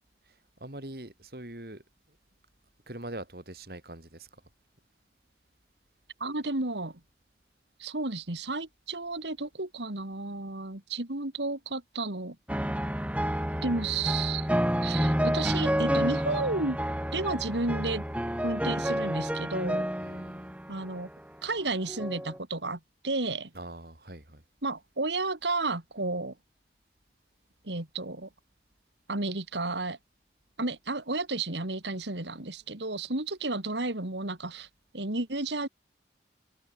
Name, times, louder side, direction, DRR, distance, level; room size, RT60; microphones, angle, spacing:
voice 1, 0.6-1.8 2.9-4.3 20.0-20.5 23.5-24.4, right 1 dB, 55° right, 3.1 m, -42 dB
voice 2, 6.2-7.0 7.8-12.4 13.6-14.5 14.8-16.8 17.1-18.0 18.4-19.9 20.7-21.1 21.4-23.5 24.6-26.3 27.6-28.3 29.1-30.0 30.6-34.7 34.9-35.7, right 3 dB, 85° right, 2.9 m, -32 dB
sound 1, 12.5-21.1 21.9-22.4, equal, 5° right, 2.2 m, -29 dB
head